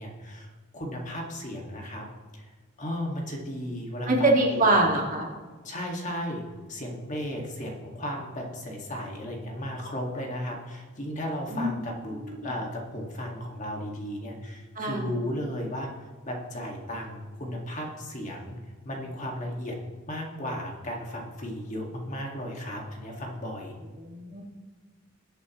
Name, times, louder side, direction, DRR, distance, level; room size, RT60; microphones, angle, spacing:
voice 1, 0.0-2.1 2.3-2.5 2.8-4.7 5.6-6.4 6.7-18.5 18.9-19.8 20.1-23.7, equal, 40° left, 0 dB, 2.0 m, -35 dB
voice 2, 4.1-5.3 11.5-11.7 12.3-12.5 14.8-15.0 24.0-24.4, right 2 dB, 40° right, -1 dB, 2.1 m, -24 dB
21.0 x 8.1 x 3.1 m, 1.4 s
head